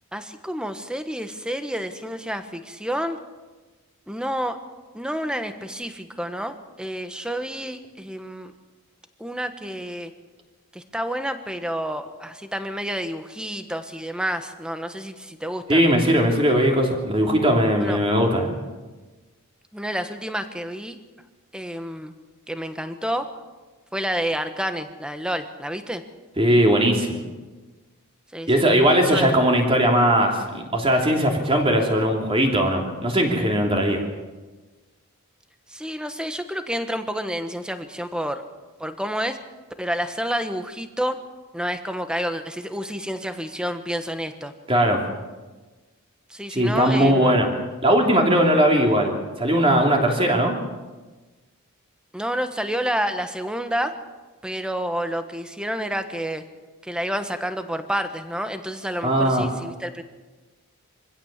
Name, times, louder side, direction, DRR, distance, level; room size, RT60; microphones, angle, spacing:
voice 1, 0.1-3.2 4.1-4.6 4.9-8.5 9.2-10.1 10.7-15.9 17.8-18.0 19.7-21.0 21.5-22.1 22.5-23.3 23.9-26.0 28.3-29.3 35.7-38.4 38.8-39.4 39.8-41.2 41.5-44.5 46.3-47.4 52.1-54.0 54.4-56.4 56.8-60.0, equal, 5° right, 8 dB, 1.2 m, -29 dB
voice 2, 15.7-18.5 26.4-27.2 28.5-34.0 44.7-45.0 46.5-47.5 47.8-50.5 59.0-59.5, equal, 25° right, 1 dB, 3.1 m, -19 dB
24.0 x 16.0 x 7.3 m, 1.3 s
head